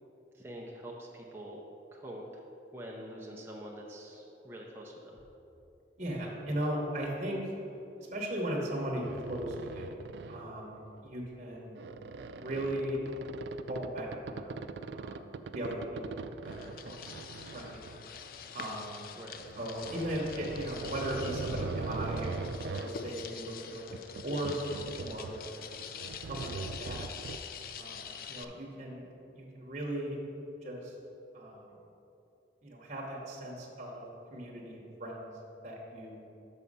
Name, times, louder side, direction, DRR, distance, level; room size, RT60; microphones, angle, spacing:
voice 1, 0.3-1.6 1.9-2.4 2.7-4.9 19.2-19.4, right 1 dB, 15° right, -3 dB, 0.6 m, -45 dB
voice 2, 6.0-7.6 8.0-9.9 10.3-11.8 12.3-13.0 13.7-14.6 14.9-17.0 17.5-17.8 18.5-19.0 19.6-23.8 24.2-25.4 26.0-27.1 27.8-29.1 29.3-30.2 30.6-31.0 31.3-31.7 32.6-34.1 34.3-35.3 35.6-36.2, right 1 dB, 40° right, -3 dB, 1.0 m, -37 dB
sound 1, 9.0-10.5 11.0-11.3 11.8-18.5 19.3-22.9 23.8-25.5 25.7-27.4, right 4 dB, 80° right, 0.3 m, -41 dB
sound 2, 16.4-28.4, left 7 dB, 55° left, 0.3 m, -46 dB
6.2 x 5.6 x 5.4 m, 2.9 s
head